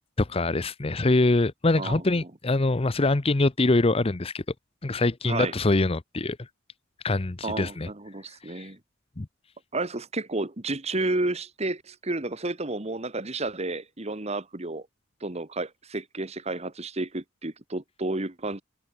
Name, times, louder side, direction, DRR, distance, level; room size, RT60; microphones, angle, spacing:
voice 1, 0.2-4.4 4.8-6.4 7.0-7.9 8.5-8.7 9.2-9.3, left 2 dB, 30° left, 0.7 m, -24 dB
voice 2, 1.8-2.3 5.3-5.5 7.4-8.8 9.7-14.9 15.2-18.6, right 2 dB, 35° right, 1.7 m, -31 dB
head